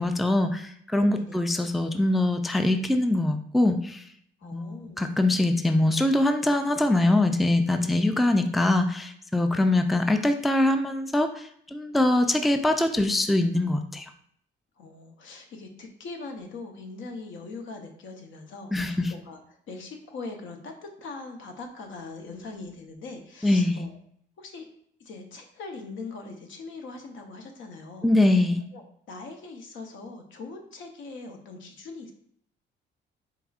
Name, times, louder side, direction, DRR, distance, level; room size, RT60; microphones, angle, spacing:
voice 1, 0.0-4.1 4.4-14.1 18.7-19.1 23.4-23.9 28.0-28.6, left 1 dB, ahead, 7 dB, 0.3 m, -23 dB
voice 2, 4.4-5.1 7.8-7.9 9.5-9.6 14.8-19.4 19.7-23.9 24.4-24.7 25.0-28.1 28.7-32.1, left 3 dB, 75° left, 4 dB, 0.8 m, -41 dB
4.8 x 3.5 x 2.4 m, 0.66 s
cardioid pair, 90°, 20 cm